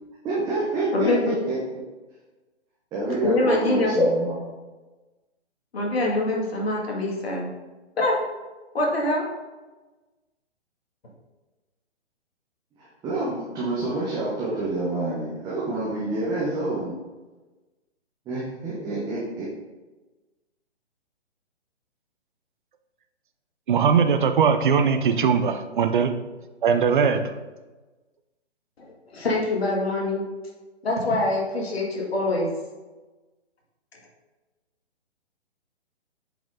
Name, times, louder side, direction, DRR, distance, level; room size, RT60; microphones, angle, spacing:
voice 1, 0.2-1.5 2.9-4.4 12.8-17.0 18.3-19.5, right 2 dB, 10° right, -6 dB, 0.9 m, -28 dB
voice 2, 0.9-1.3 3.2-4.1 5.7-7.5 8.0-8.2 8.7-9.3 29.1-30.2 30.8-32.5, left 2 dB, 60° left, -1 dB, 2.1 m, -24 dB
voice 3, 23.7-26.1 26.6-27.2, right 6 dB, 45° right, 8 dB, 0.7 m, -20 dB
7.8 x 5.2 x 3.7 m, 1.2 s
figure-of-eight pair, 130°, 35 cm